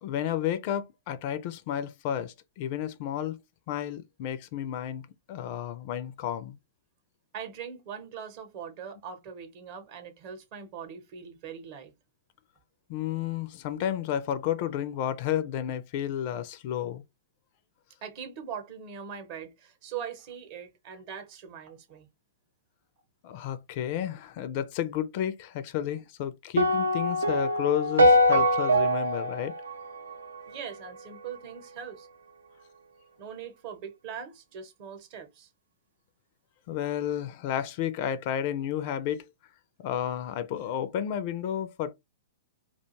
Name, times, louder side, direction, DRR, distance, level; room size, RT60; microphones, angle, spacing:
voice 1, 0.0-3.4 3.7-5.0 5.3-6.6 12.9-17.0 23.2-29.5 36.7-39.3 39.8-41.9, left 10 dB, 45° left, 0.4 m, -31 dB
voice 2, 7.3-11.9 18.0-22.1 30.5-32.1 33.2-35.5, right 7 dB, 45° right, 0.8 m, -41 dB
sound 1, 26.6-30.9, equal, 80° right, 0.3 m, -23 dB
2.4 x 2.2 x 3.0 m
figure-of-eight pair, 110°, 0 cm